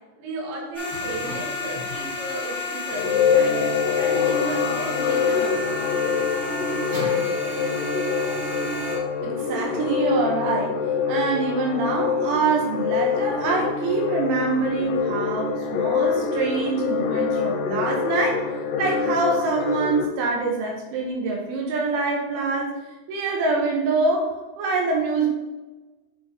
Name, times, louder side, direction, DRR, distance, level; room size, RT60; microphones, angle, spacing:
voice 1, 0.2-3.6 3.9-5.6, right 2 dB, 65° right, -3 dB, 3.5 m, -34 dB
sound 1, 0.7-9.0, left 2 dB, 20° right, 2.2 m, -31 dB
sound 2, 2.9-20.1, left 6 dB, 85° left, 3.1 m, -25 dB
voice 2, 9.2-10.8 11.1-18.5 18.8-22.8 23.1-24.3 24.6-25.3, right 3 dB, 85° right, -1 dB, 3.6 m, -25 dB
8.3 x 7.3 x 2.9 m, 1.1 s
omnidirectional pair, 5.3 m